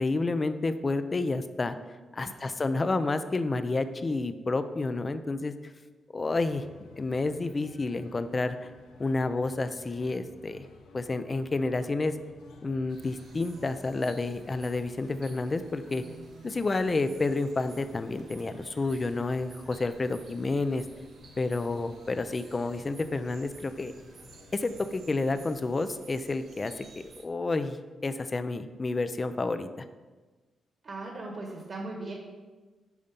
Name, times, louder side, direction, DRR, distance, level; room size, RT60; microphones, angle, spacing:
voice 1, 0.0-1.8 2.1-5.5 6.1-6.6 7.0-8.7 9.0-10.7 10.9-12.2 12.6-16.0 16.4-20.8 21.4-23.9 24.5-26.8 27.2-27.8 28.0-29.8, left 3 dB, 25° left, 11 dB, 0.5 m, -30 dB
voice 2, 2.2-2.5 15.9-16.4 25.3-25.4 30.8-32.1, right 2 dB, 45° right, 0 dB, 1.5 m, -40 dB
sound 1, 6.3-25.0, left 4 dB, 85° left, 0.9 m, -54 dB
sound 2, 12.9-27.2, right 4 dB, 60° right, 0.9 m, -55 dB
10.5 x 4.2 x 5.3 m, 1.3 s
cardioid pair, 130°, 0 cm